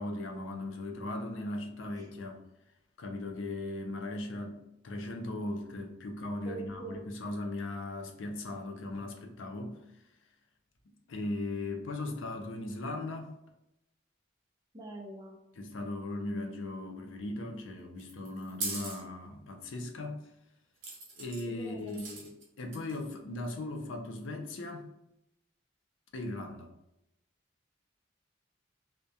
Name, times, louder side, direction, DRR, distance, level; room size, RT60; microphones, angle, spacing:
voice 1, 0.0-2.4 3.0-9.8 11.1-13.4 15.5-20.3 21.2-22.3 22.6-24.9 26.1-26.7, left 2 dB, 80° left, 3 dB, 0.4 m, -38 dB
voice 2, 6.5-7.0 14.7-15.4 21.6-22.0, right 3 dB, 20° right, -1 dB, 0.4 m, -43 dB
sound 1, 18.0-19.0 20.8-21.4 21.9-22.4 22.7-23.1, right 3 dB, 80° right, 0.7 m, -39 dB
2.2 x 2.1 x 2.6 m, 0.85 s
head